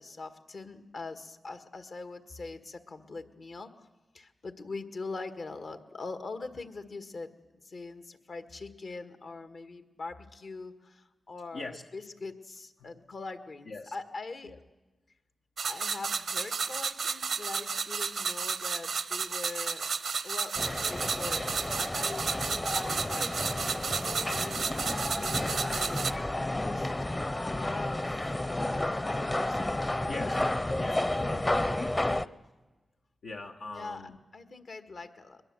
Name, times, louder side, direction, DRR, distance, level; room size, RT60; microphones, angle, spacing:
voice 1, 0.0-3.9 4.1-14.5 15.6-19.9 20.2-21.5 21.7-23.5 23.9-26.3 26.6-26.9 27.4-30.5 30.8-31.5 33.7-34.0 34.3-35.4, left 3 dB, 70° left, 8 dB, 1.7 m, -43 dB
sound 1, 15.6-26.1, right 5 dB, 80° right, 0.8 m, -32 dB
sound 2, 20.6-32.3, left 1 dB, 30° left, 0.8 m, -31 dB
voice 2, 30.1-30.5 30.8-32.3 33.2-34.2, left 3 dB, 90° left, -1 dB, 1.2 m, -42 dB
22.0 x 21.5 x 7.8 m, 1.2 s
cardioid pair, 40°, 0 cm